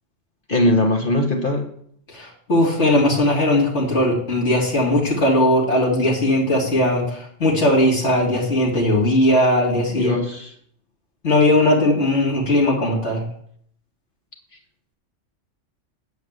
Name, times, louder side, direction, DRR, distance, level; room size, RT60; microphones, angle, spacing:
voice 1, 0.5-1.7 9.9-10.5, left 1 dB, 45° left, 3 dB, 1.4 m, -20 dB
voice 2, 2.1-10.2 11.2-13.2, left 1 dB, 65° left, -3 dB, 3.2 m, -18 dB
9.1 x 5.3 x 7.9 m, 0.64 s
omnidirectional pair, 1.2 m